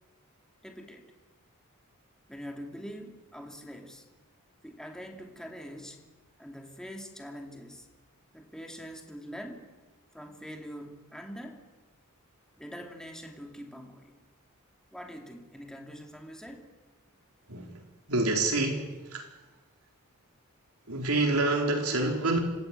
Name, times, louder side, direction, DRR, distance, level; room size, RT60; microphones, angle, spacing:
voice 1, 0.6-1.1 2.3-4.0 4.6-6.0 6.4-7.9 8.3-9.7 10.1-11.6 12.6-14.2 14.9-16.7, equal, 5° left, 2 dB, 2.5 m, -44 dB
voice 2, 17.5-19.3 20.9-22.4, right 2 dB, 70° right, 2 dB, 4.3 m, -28 dB
27.0 x 15.5 x 9.1 m, 1.2 s
head